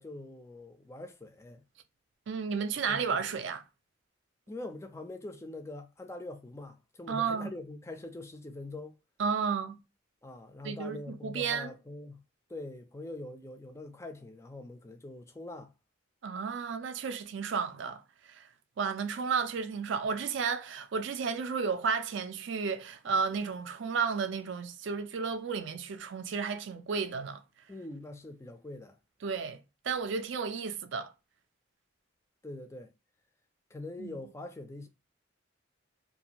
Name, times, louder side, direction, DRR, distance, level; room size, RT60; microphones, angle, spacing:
voice 1, 0.0-1.6 2.9-3.3 4.5-9.0 10.2-12.2 12.5-15.7 27.7-29.0 32.4-32.9 33.7-34.9, left 2 dB, 15° left, 0.3 m, -43 dB
voice 2, 2.3-3.6 7.1-7.5 9.2-9.8 10.6-11.7 16.2-18.4 18.8-27.4 29.2-31.1 34.0-34.2, right 5 dB, 60° right, 0.4 m, -33 dB
2.6 x 2.4 x 2.8 m
head